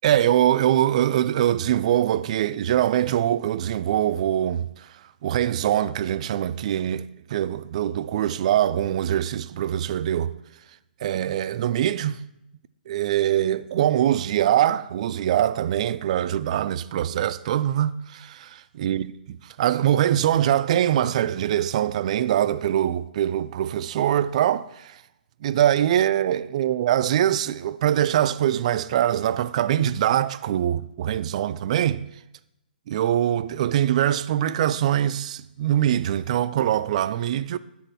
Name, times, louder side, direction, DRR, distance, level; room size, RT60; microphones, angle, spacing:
voice 1, 0.0-4.7 5.2-10.4 11.0-12.2 12.9-19.1 19.6-25.0 25.4-32.0 32.9-37.6, right 11 dB, 45° right, 0.4 m, -23 dB
8.7 x 4.1 x 6.1 m
figure-of-eight pair, 125°, 5 cm